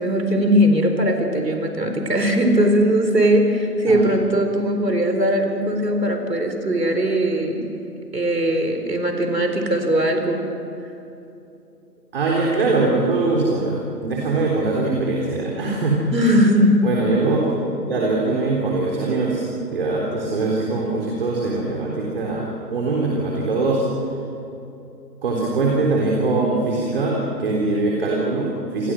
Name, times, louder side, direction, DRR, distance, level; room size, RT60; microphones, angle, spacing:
voice 1, 0.0-7.7 8.1-10.5 16.1-16.8 28.8-28.9, equal, 75° right, 5 dB, 4.4 m, -19 dB
voice 2, 12.1-16.0 16.8-23.9 25.2-28.9, right 3 dB, 35° right, -2 dB, 3.7 m, -22 dB
28.0 x 22.5 x 6.3 m, 2.9 s
figure-of-eight pair, 145°, 50 cm